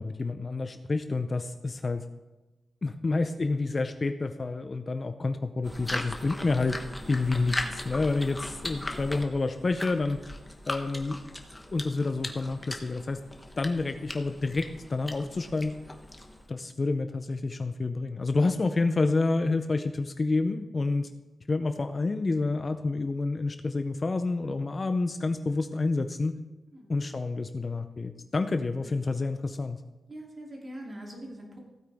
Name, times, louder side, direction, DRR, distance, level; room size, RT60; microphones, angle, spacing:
voice 1, 0.0-2.0 2.8-6.8 7.1-10.2 10.7-11.2 11.7-13.2 13.6-15.7 16.5-21.1 21.5-26.3 26.9-29.8, left 3 dB, 30° left, 8 dB, 0.5 m, -29 dB
sound 1, 5.6-16.5, left 1 dB, 10° left, 1.0 m, -38 dB
voice 2, 30.1-31.6, right 1 dB, 35° right, -2 dB, 2.8 m, -43 dB
15.5 x 9.1 x 3.5 m, 1.1 s
wide cardioid pair, 150°, 0 cm